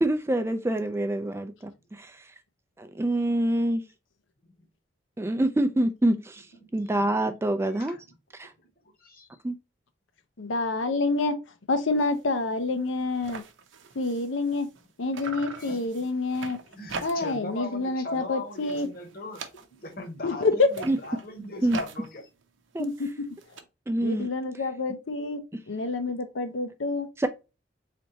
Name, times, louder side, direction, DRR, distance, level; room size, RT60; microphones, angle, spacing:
voice 1, 0.0-2.2 2.8-3.8 5.2-6.5 6.7-8.0 8.4-8.5 9.4-9.6 20.8-21.0 21.6-21.8 22.7-22.9 23.9-24.3 27.2-27.3, right 1 dB, 15° right, 0.3 m, -26 dB
voice 2, 6.6-7.1 7.7-8.2 8.6-8.7 9.0-9.3 15.0-15.1 15.6-16.2 16.4-22.3, left 1 dB, 50° left, 1.0 m, -40 dB
voice 3, 10.4-11.3 11.7-13.4 14.0-14.7 15.0-16.6 17.0-18.9 20.2-20.7 22.8-23.1 24.0-25.4 25.7-27.1, left 3 dB, 90° left, 0.7 m, -27 dB
sound 1, 12.0-12.2 12.6-12.7 12.9-14.9 15.1-17.5 17.8-18.2 18.5-20.0 20.6-23.6, right 4 dB, 85° right, 0.6 m, -42 dB
4.2 x 3.3 x 2.8 m
head